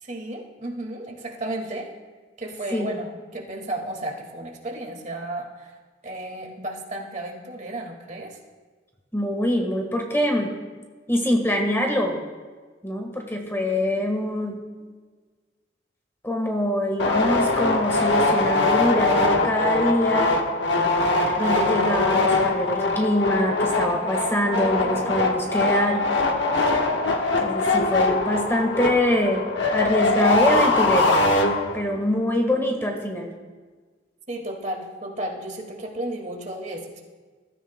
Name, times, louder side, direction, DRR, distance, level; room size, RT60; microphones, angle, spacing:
voice 1, 0.0-1.9 2.4-5.7 6.0-8.4 34.3-37.0, right 1 dB, 40° right, 1 dB, 2.0 m, -33 dB
voice 2, 9.1-10.5 11.1-12.2 12.8-14.6 16.2-20.4 21.4-26.0 27.4-29.4 29.7-31.2 31.7-33.3, equal, 15° left, 2 dB, 1.4 m, -24 dB
sound 1, 17.0-32.0, left 2 dB, 70° left, 1.2 m, -22 dB
21.0 x 13.5 x 2.2 m, 1.4 s
head